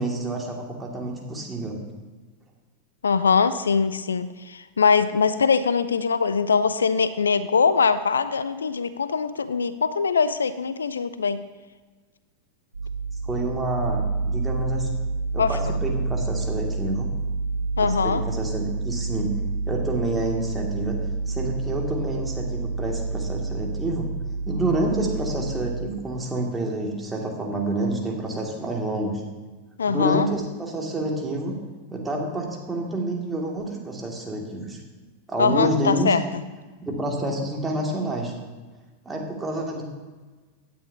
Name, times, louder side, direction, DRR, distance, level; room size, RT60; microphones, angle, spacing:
voice 1, 0.0-1.8 13.2-14.9 15.3-17.1 17.8-19.3 19.7-24.1 24.5-29.2 29.9-31.6 31.9-34.8 35.3-36.2 36.8-38.3 39.0-39.8, right 1 dB, 10° right, -1 dB, 2.4 m, -28 dB
voice 2, 3.0-11.4 15.4-15.6 17.8-18.2 29.8-30.3 35.4-36.4, left 5 dB, 70° left, 15 dB, 0.4 m, -22 dB
sound 1, 12.7-25.9, right 3 dB, 75° right, 0.6 m, -28 dB
16.5 x 9.9 x 2.8 m, 1.3 s
figure-of-eight pair, 90°, 0 cm